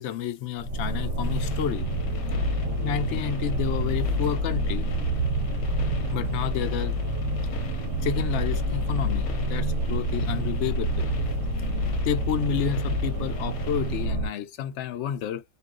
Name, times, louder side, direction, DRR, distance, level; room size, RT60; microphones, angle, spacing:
voice 1, 0.0-1.9 2.8-4.9 6.1-7.0 8.0-11.1 12.0-15.4, left 9 dB, 65° left, 0.8 m, -30 dB
sound 1, 0.6-14.3, equal, 70° right, 0.8 m, -27 dB
sound 2, 1.2-14.1, left 1 dB, 85° left, 1.1 m, -38 dB
Bass guitar, 2.6-8.9, left 2 dB, 25° right, 0.5 m, -47 dB
2.4 x 2.3 x 2.3 m
omnidirectional pair, 1.5 m